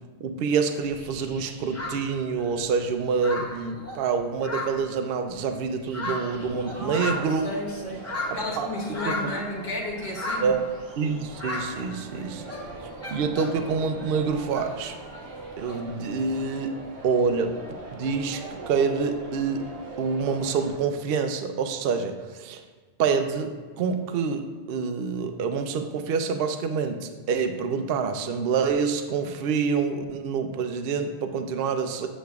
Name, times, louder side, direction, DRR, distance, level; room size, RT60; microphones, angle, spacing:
voice 1, 0.2-7.5 8.3-8.7 9.0-9.3 10.4-10.6 11.0-12.4 13.1-14.9 15.6-17.5 17.9-19.7 20.0-22.6 23.0-32.1, right 5 dB, 60° right, 6 dB, 0.7 m, -27 dB
sound 1, 0.7-2.7 3.0-5.3 5.7-9.5 10.0-10.7 11.3-12.1 12.3-13.7 14.0-15.8, left 2 dB, 15° left, 0.8 m, -35 dB
sound 2, 6.3-20.8, right 3 dB, 85° right, 1.1 m, -42 dB
voice 2, 6.7-8.1 8.3-10.5 29.2-29.3, left 1 dB, 40° left, -4 dB, 1.2 m, -33 dB
8.0 x 6.3 x 2.3 m, 1.4 s
omnidirectional pair, 1.2 m